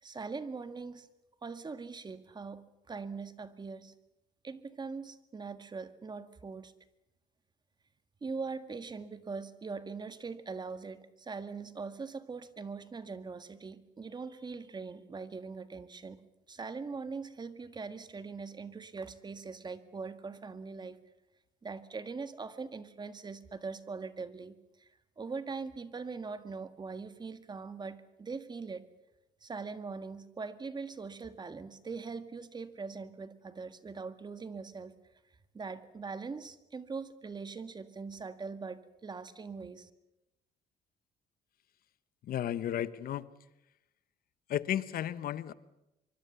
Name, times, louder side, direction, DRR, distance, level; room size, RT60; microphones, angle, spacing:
voice 1, 0.0-1.1 1.4-3.9 4.4-6.7 8.2-16.2 16.5-21.0 21.6-24.9 25.2-28.8 29.4-34.9 35.5-39.9, right 4 dB, 25° right, 11 dB, 1.8 m, -42 dB
voice 2, 42.2-43.3 44.5-45.5, left 11 dB, 60° left, 16 dB, 1.2 m, -33 dB
24.5 x 24.0 x 7.1 m, 0.94 s
cardioid pair, 110°, 17 cm